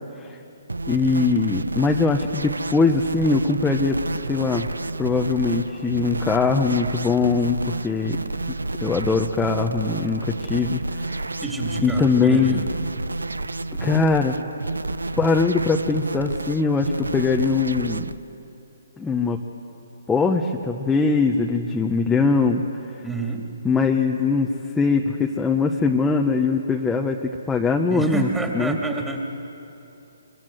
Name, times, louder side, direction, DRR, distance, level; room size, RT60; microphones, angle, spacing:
sound 1, 0.7-18.2, right 2 dB, 90° right, 0.6 m, -30 dB
voice 1, 0.9-4.0 4.3-4.7 5.0-8.2 8.8-11.2 11.8-12.6 13.8-14.4 15.2-18.0 19.0-19.4 20.1-22.6 23.6-24.5 24.7-28.3 28.5-28.8, left 4 dB, 10° left, 1 dB, 1.1 m, -21 dB
voice 2, 11.4-12.7 23.0-23.5 27.9-29.2, right 3 dB, 5° right, 1 dB, 2.7 m, -28 dB
23.5 x 23.0 x 7.9 m, 2.9 s
hypercardioid pair, 140°, 0 cm